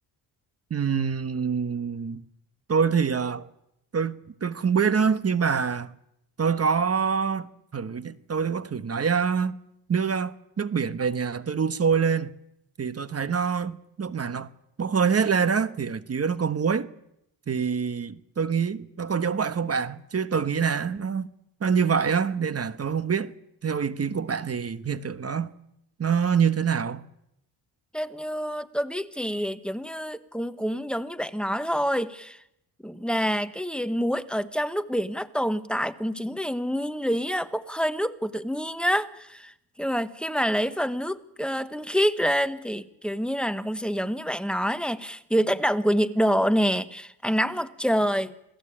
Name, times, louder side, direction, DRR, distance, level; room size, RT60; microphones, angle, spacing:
voice 1, 0.7-2.2 2.7-3.5 3.9-5.9 6.4-9.5 9.9-12.3 12.8-14.5 14.8-16.9 17.5-21.3 21.6-23.3 23.6-25.5 26.0-27.1, right 6 dB, 35° right, 1.3 m, -25 dB
voice 2, 27.9-32.4 32.8-39.5 39.8-48.3, equal, ahead, 1.3 m, -27 dB
27.0 x 18.0 x 8.8 m
cardioid pair, 100°, 44 cm